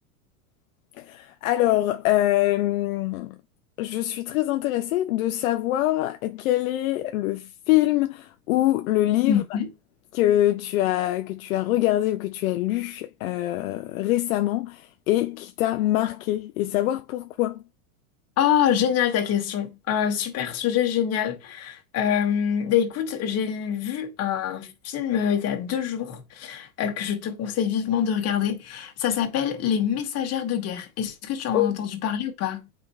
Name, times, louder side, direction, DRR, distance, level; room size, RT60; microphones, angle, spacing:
voice 1, 1.0-3.3 3.8-9.4 10.1-17.6 31.5-31.8, left 15 dB, 70° left, 0.7 m, -24 dB
voice 2, 9.3-9.7 18.4-32.7, left 9 dB, 35° left, 1.9 m, -25 dB
8.6 x 4.6 x 3.6 m
hypercardioid pair, 120°, 43 cm